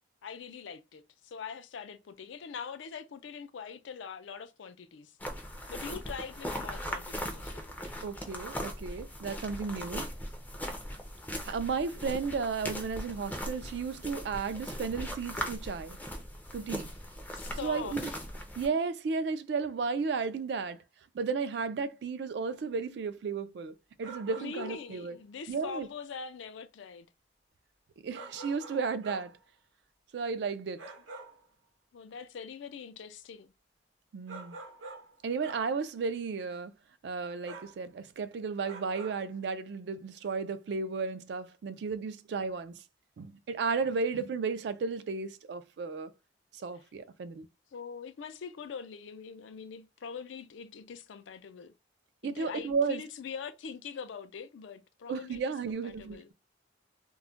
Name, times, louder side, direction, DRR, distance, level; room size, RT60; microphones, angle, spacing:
voice 1, 0.2-5.2 5.7-7.8 17.3-18.2 24.4-27.1 31.9-33.5 46.7-46.8 47.7-51.7 52.2-56.3, left 6 dB, 80° left, 0.4 m, -43 dB
sound 1, 5.2-18.7, equal, 10° left, 0.4 m, -39 dB
voice 2, 8.0-10.1 11.4-16.0 16.5-16.9 17.6-18.1 18.6-20.8 21.1-25.2 25.5-25.9 28.0-29.4 30.1-30.8 34.1-34.6 35.2-36.7 37.0-42.8 43.2-46.1 46.6-47.5 52.2-53.0 55.1-56.3, right 5 dB, 65° right, 0.3 m, -34 dB
sound 2, 22.6-22.7 24.0-24.9 28.1-29.4 30.8-31.5 34.3-35.2 35.4-35.8 37.4-37.8 38.7-39.3, right 3 dB, 90° right, 0.7 m, -46 dB
2.2 x 2.1 x 3.7 m
head